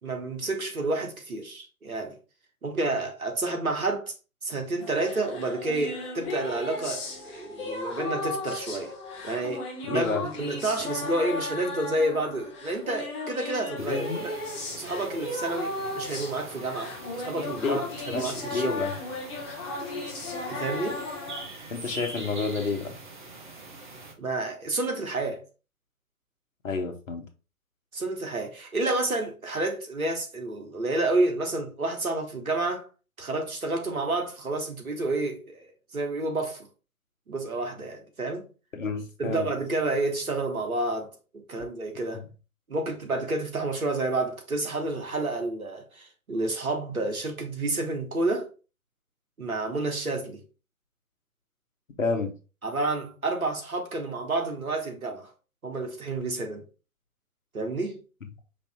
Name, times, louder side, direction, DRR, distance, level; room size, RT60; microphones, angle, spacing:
voice 1, 0.0-2.2 2.6-4.1 4.4-8.9 9.2-14.1 14.7-17.8 18.1-18.9 20.5-21.0 24.2-25.4 27.9-32.9 33.2-36.7 37.3-38.5 39.2-42.2 42.7-48.5 49.4-50.4 52.6-55.3 55.6-56.6 57.5-58.0, right 2 dB, 70° right, 1.3 m, -30 dB
sound 1, 4.8-21.4, left 2 dB, 20° left, 1.0 m, -36 dB
voice 2, 9.8-10.2 13.9-14.2 17.6-17.8 18.1-18.9 21.7-23.0 26.6-27.2 38.7-39.5 42.1-42.2 52.0-52.3, left 4 dB, 60° left, 1.2 m, -29 dB
sound 2, 13.8-24.1, right 3 dB, 35° right, 1.0 m, -44 dB
5.2 x 2.7 x 3.5 m
figure-of-eight pair, 135°, 44 cm